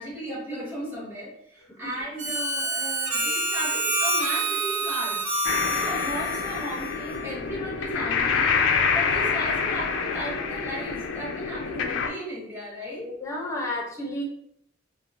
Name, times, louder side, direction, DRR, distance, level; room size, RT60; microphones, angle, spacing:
voice 1, 0.0-5.2 5.7-8.5 8.9-13.0, equal, 10° right, -7 dB, 1.1 m, -35 dB
Harmonica, 2.2-7.4, right 1 dB, 90° right, 0.7 m, -28 dB
sound 1, 5.4-12.1, left 5 dB, 65° left, 0.3 m, -27 dB
voice 2, 13.0-14.2, left 1 dB, 15° left, -2 dB, 0.6 m, -32 dB
2.9 x 2.0 x 2.5 m, 0.73 s
head